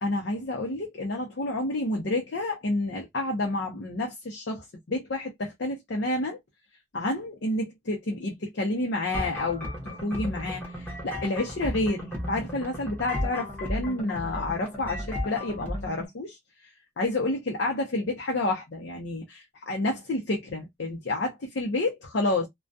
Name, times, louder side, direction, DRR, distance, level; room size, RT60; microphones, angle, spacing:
voice 1, 0.0-6.4 6.9-16.4 17.0-22.5, left 2 dB, 85° left, 0.6 m, -29 dB
sound 1, 9.1-16.1, left 1 dB, 10° left, 0.8 m, -34 dB
2.2 x 2.2 x 2.5 m
head